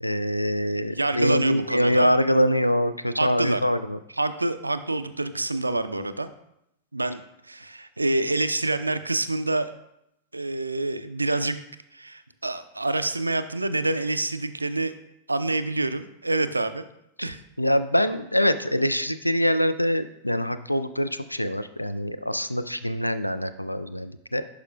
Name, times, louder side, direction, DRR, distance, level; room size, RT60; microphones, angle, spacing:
voice 1, 0.0-4.0 17.6-24.4, equal, 85° left, 12 dB, 0.3 m, -24 dB
voice 2, 0.7-2.1 3.2-3.6 4.1-6.3 6.9-9.7 10.3-11.6 11.9-15.0 15.3-16.8 17.2-17.4, right 2 dB, 80° right, 11 dB, 0.3 m, -27 dB
11.0 x 4.9 x 2.2 m, 0.80 s
figure-of-eight pair, 90°, 0 cm